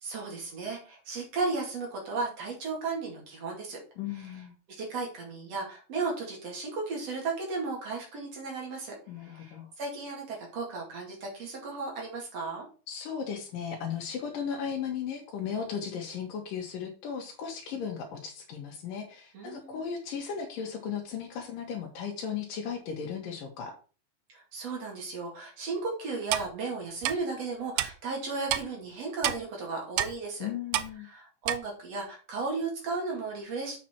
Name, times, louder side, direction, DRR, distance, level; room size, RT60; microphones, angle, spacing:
voice 1, 0.0-3.8 4.1-4.4 4.8-12.7 19.3-19.8 24.3-30.5 31.0-33.8, right 4 dB, 50° right, -1 dB, 3.3 m, -35 dB
voice 2, 4.0-4.6 9.1-9.7 12.9-23.7 30.4-31.1, left 7 dB, 75° left, 1 dB, 2.8 m, -36 dB
Clock, 26.3-26.5 27.0-27.1 27.8-27.9 28.5-28.6 29.2-29.4 30.0-30.1 30.7-30.9 31.5-31.6, right 13 dB, 85° right, 1.7 m, -27 dB
7.5 x 5.8 x 4.4 m, 0.36 s
omnidirectional pair, 3.9 m